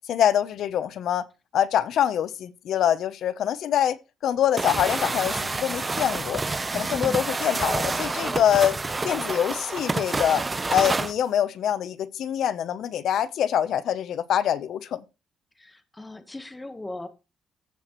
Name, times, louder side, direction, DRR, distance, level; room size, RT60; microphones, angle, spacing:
voice 1, 0.1-1.2 1.5-4.0 4.2-6.4 6.7-8.7 9.0-10.4 10.7-15.0, left 10 dB, 70° left, 0.7 m, -24 dB
sound 1, 4.6-11.1, right 3 dB, 25° right, 0.8 m, -28 dB
voice 2, 6.9-7.3 15.6-17.1, left 2 dB, 15° left, 1.2 m, -39 dB
15.5 x 5.8 x 3.1 m
cardioid pair, 90°, 0 cm